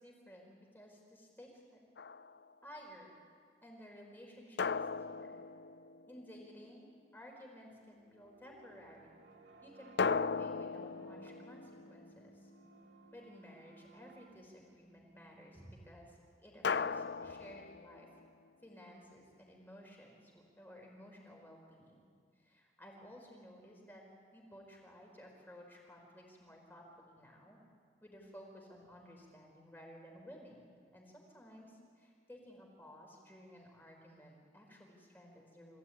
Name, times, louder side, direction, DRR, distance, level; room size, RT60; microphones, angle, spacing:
voice 1, 0.0-1.5 2.6-3.1 3.6-5.4 6.1-6.9 7.1-9.2 9.6-12.5 13.1-18.1 18.6-22.1 22.4-24.0 24.3-27.6 28.0-35.8, equal, 10° left, 0 dB, 4.9 m, -55 dB
sound 1, 2.0-2.5 4.6-6.4 10.0-12.6 16.6-18.3, left 5 dB, 70° left, 0.5 m, -37 dB
sound 2, 7.7-16.5, right 2 dB, 85° right, 2.5 m, -61 dB
26.0 x 16.5 x 9.7 m, 2.1 s
head